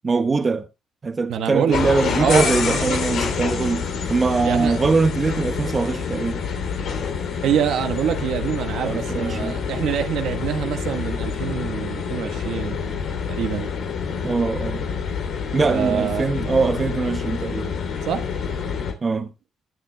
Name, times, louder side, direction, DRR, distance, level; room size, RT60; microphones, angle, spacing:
voice 1, 0.0-0.7 1.0-6.4 8.8-9.6 14.2-14.9 15.5-17.7 19.0-19.3, right 4 dB, 35° right, 1.2 m, -22 dB
voice 2, 1.3-1.8 2.2-3.0 4.4-4.8 7.4-12.8 13.3-13.7 15.7-16.2 18.1-18.2, right 9 dB, 80° right, 1.4 m, -25 dB
sound 1, 1.7-18.9, left 6 dB, 70° left, 3.0 m, -27 dB
20.5 x 7.4 x 2.2 m
cardioid pair, 90°, 0 cm